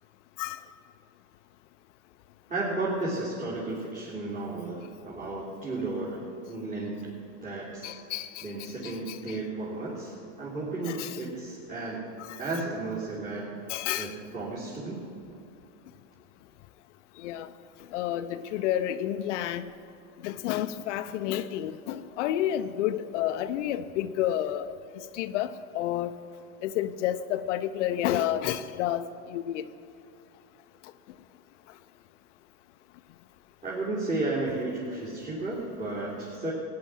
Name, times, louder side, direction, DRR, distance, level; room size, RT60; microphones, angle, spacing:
voice 1, 2.5-6.2 6.5-7.1 7.4-7.9 8.4-12.0 12.4-13.5 14.0-15.0 33.6-36.5, right 2 dB, 20° right, -8 dB, 3.3 m, -33 dB
voice 2, 7.8-9.4 10.9-11.2 12.2-12.4 13.7-14.2 17.2-17.5 17.9-19.6 20.2-24.7 25.1-26.1 26.6-29.6, left 12 dB, 75° left, 10 dB, 0.7 m, -30 dB
16.5 x 9.6 x 6.2 m, 2.6 s
supercardioid pair, 110°, 37 cm